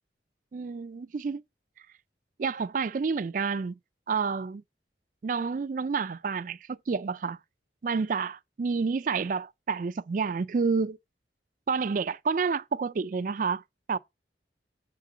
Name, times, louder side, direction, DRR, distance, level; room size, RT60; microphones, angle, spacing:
voice 1, 0.5-1.4 2.4-3.8 4.1-4.6 5.2-7.4 7.8-11.0 11.7-13.6 13.9-14.0, right 5 dB, 45° right, 0.4 m, -29 dB
7.5 x 4.7 x 4.9 m
head